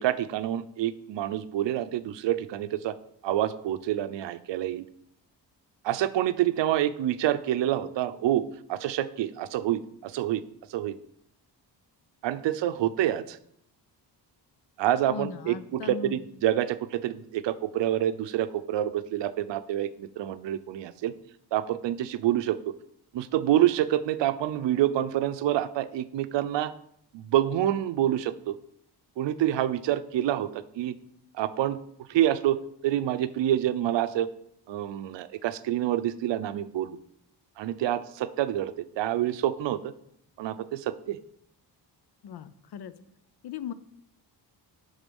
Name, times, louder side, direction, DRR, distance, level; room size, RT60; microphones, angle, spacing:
voice 1, 0.0-2.9 3.2-4.8 5.8-8.4 8.7-10.4 10.7-11.0 12.2-13.4 14.8-21.1 21.5-22.6 23.1-26.7 27.1-28.6 29.2-30.9 31.4-31.8 32.1-32.6 32.8-34.3 34.7-37.0 37.6-39.9 40.4-41.2, right 12 dB, 85° right, 13 dB, 0.6 m, -27 dB
voice 2, 15.1-16.3 42.2-42.9 43.4-43.7, left 7 dB, 65° left, 14 dB, 0.6 m, -38 dB
11.5 x 4.0 x 5.3 m, 0.72 s
wide cardioid pair, 180°, 42 cm